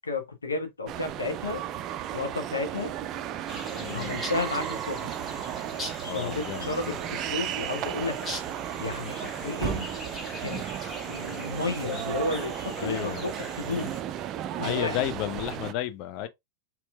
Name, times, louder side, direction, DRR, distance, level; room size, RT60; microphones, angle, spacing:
voice 1, 0.1-1.6 2.1-3.0 3.9-5.1 6.0-8.2 8.8-10.0 10.4-10.7 11.0-13.9 14.6-15.0, left 3 dB, 75° left, 1.0 m, -32 dB
sound 1, 0.9-15.7, right 11 dB, 35° right, 0.3 m, -34 dB
sound 2, 3.5-14.0, left 1 dB, 20° left, 1.4 m, -42 dB
voice 2, 3.8-4.2 6.1-7.0 12.8-13.2 14.6-16.3, left 12 dB, 45° left, 0.5 m, -32 dB
4.3 x 4.1 x 2.2 m
figure-of-eight pair, 90°, 0 cm